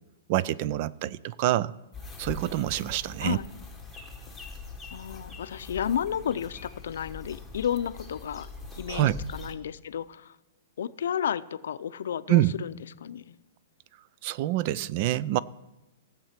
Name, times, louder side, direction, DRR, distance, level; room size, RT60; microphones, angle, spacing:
voice 1, 0.3-1.7 2.2-3.4 8.9-9.2 12.3-12.6 14.2-15.4, right 14 dB, 35° right, 0.4 m, -26 dB
sound 1, 1.9-9.6, left 3 dB, ahead, 1.3 m, -42 dB
voice 2, 4.9-8.5 8.8-9.0 9.3-10.3 10.8-13.4, left 9 dB, 70° left, 0.6 m, -32 dB
16.5 x 7.5 x 5.9 m
hypercardioid pair, 165°, 0 cm